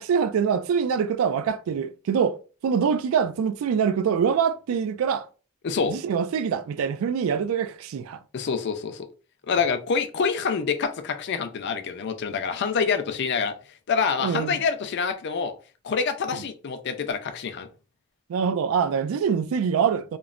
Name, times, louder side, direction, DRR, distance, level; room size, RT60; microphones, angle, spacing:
voice 1, 0.0-5.3 5.9-8.2 14.2-14.6 16.3-16.4 18.3-20.2, right 7 dB, 90° right, 0.3 m, -24 dB
voice 2, 8.3-9.1 9.5-13.5 13.9-15.5 15.8-17.7, left 5 dB, 55° left, 0.4 m, -26 dB
3.0 x 2.0 x 2.4 m
head